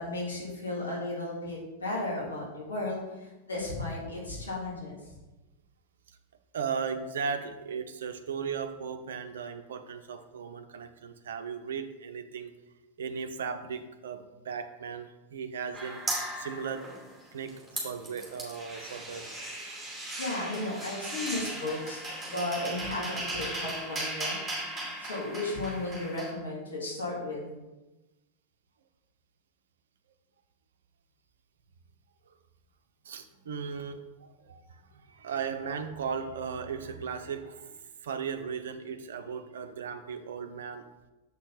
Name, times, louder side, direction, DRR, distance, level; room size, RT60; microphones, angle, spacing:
voice 1, 0.0-5.0 20.2-24.4 25.0-27.6, left 2 dB, 70° left, -5 dB, 2.7 m, -34 dB
voice 2, 6.5-12.5 13.0-16.0 16.3-16.9 17.3-19.3 33.0-40.9, right 6 dB, 65° right, 8 dB, 0.7 m, -37 dB
sound 1, 15.7-17.2 17.5-26.3, right 1 dB, 5° right, 2.6 m, -37 dB
7.3 x 6.0 x 4.0 m, 1.1 s
figure-of-eight pair, 90°, 0 cm